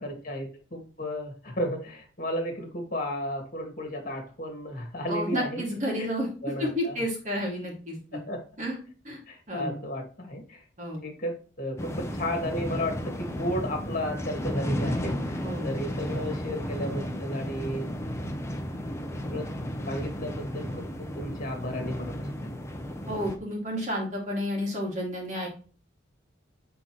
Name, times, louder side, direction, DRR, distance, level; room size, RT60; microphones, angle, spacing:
voice 1, 0.0-5.6 6.0-6.1 6.4-7.0 8.1-8.4 9.3-10.6 11.0-17.9 19.2-19.5 19.9-20.7 21.0-22.6, equal, 45° left, 3 dB, 1.8 m, -33 dB
voice 2, 5.1-6.3 6.6-8.2 8.6-8.8 9.0-9.2 9.5-9.8 10.8-11.0 15.4-15.7 23.1-25.5, equal, 40° right, -1 dB, 2.4 m, -31 dB
sound 1, 11.8-23.4, equal, 15° left, 0.8 m, -33 dB
7.8 x 3.9 x 3.1 m, 0.39 s
head